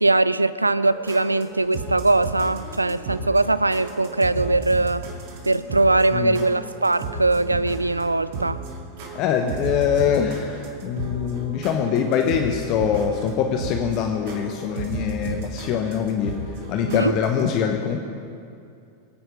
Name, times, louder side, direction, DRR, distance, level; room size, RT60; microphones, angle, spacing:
voice 1, 0.0-5.1 5.5-8.6 16.9-17.2, right 2 dB, 80° right, 0.4 m, -21 dB
sound 1, 0.8-17.4, right 2 dB, 50° right, 2.3 m, -34 dB
voice 2, 9.1-16.3 16.7-18.0, left 8 dB, 40° left, 1.1 m, -23 dB
24.5 x 9.2 x 5.1 m
figure-of-eight pair, 90°, 0 cm